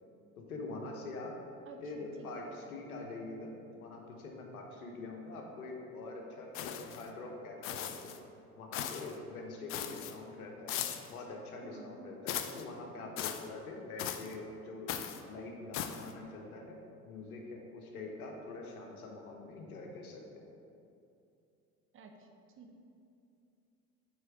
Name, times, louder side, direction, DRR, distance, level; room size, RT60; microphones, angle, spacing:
voice 1, 0.4-1.3 1.8-8.1 8.6-10.8 11.1-14.9 15.3-16.8 17.0-20.4, left 3 dB, 75° left, 1 dB, 1.1 m, -45 dB
voice 2, 1.7-2.3 11.6-12.2 13.0-13.1 21.9-22.3 22.6-22.7, right 4 dB, 30° right, 3 dB, 0.7 m, -52 dB
sound 1, 6.5-7.1 7.6-8.2 8.7-9.1 9.7-10.1 10.7-11.1 12.3-12.6 13.2-13.5 14.0-14.4 14.9-15.2 15.7-16.1, left 10 dB, 30° left, 0.4 m, -38 dB
6.5 x 4.1 x 4.8 m, 2.6 s
figure-of-eight pair, 70°, 44 cm